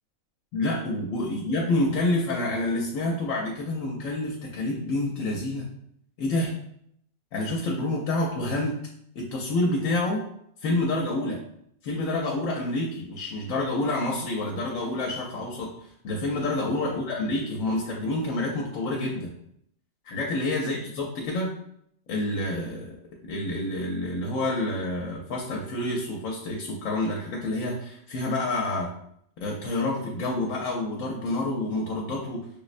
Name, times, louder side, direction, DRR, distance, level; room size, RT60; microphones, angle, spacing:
voice 1, 0.5-5.7 6.2-6.5 7.3-8.8 9.2-10.2 10.6-11.4 11.8-19.4 20.0-21.5 22.1-23.0 23.2-28.9 29.4-32.4, left 2 dB, 75° left, -1 dB, 0.9 m, -28 dB
5.1 x 2.0 x 2.4 m, 0.72 s
omnidirectional pair, 1.4 m